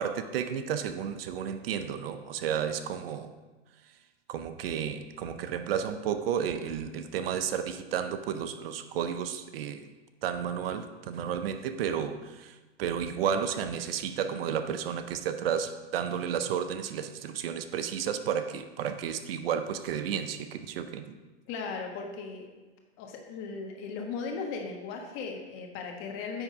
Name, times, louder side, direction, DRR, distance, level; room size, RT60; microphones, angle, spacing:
voice 1, 0.0-3.3 4.3-9.9 10.2-21.2, right 8 dB, 55° right, 10 dB, 0.6 m, -32 dB
voice 2, 21.5-22.5 23.0-26.4, left 5 dB, 35° left, 2 dB, 1.3 m, -37 dB
9.4 x 3.6 x 5.0 m, 1.2 s
hypercardioid pair, 120°, 34 cm